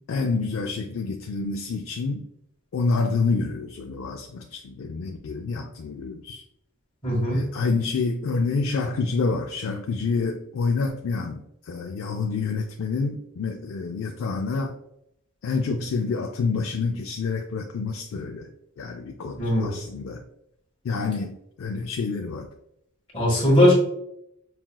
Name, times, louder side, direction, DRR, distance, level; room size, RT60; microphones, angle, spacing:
voice 1, 0.1-2.2 2.7-6.4 7.3-14.7 15.4-18.5 18.8-20.2 20.8-22.5, left 4 dB, 65° left, 4 dB, 0.4 m, -28 dB
voice 2, 7.0-7.4 19.4-19.7 23.1-23.7, left 1 dB, 25° left, -4 dB, 1.4 m, -19 dB
5.6 x 2.4 x 2.3 m, 0.77 s
head